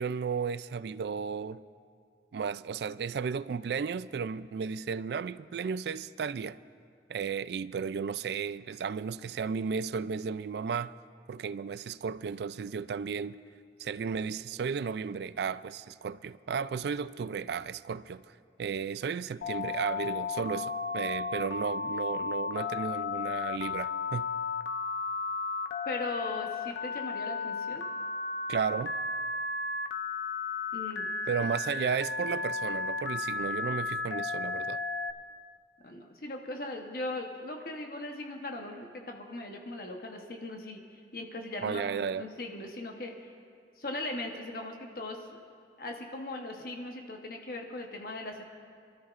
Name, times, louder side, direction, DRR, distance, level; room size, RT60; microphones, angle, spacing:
voice 1, 0.0-1.6 2.3-6.6 7.1-10.9 11.3-13.4 13.8-18.2 18.6-24.3 28.5-28.9 31.3-34.8 41.6-42.2, right 6 dB, 65° right, 0.3 m, -34 dB
Telephone, 19.4-35.1, left 4 dB, 90° left, 0.8 m, -34 dB
voice 2, 25.9-27.8 30.7-31.5 35.8-43.3 43.8-45.4 45.8-48.4, left 2 dB, 55° left, 1.0 m, -39 dB
28.5 x 13.0 x 2.5 m
head